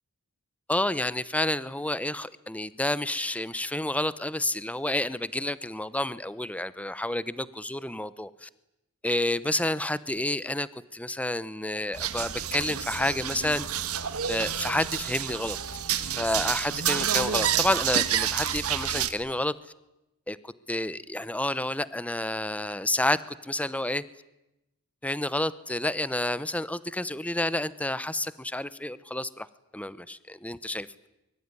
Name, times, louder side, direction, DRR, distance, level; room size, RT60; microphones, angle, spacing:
voice 1, 0.7-8.5 9.0-13.7 14.3-15.6 16.2-19.5 20.3-24.0 25.0-29.5 29.7-30.9, left 1 dB, 5° left, 16 dB, 0.9 m, -29 dB
sound 1, 11.9-19.1, right 9 dB, 80° right, 1.8 m, -29 dB
24.0 x 23.5 x 9.8 m, 0.93 s
head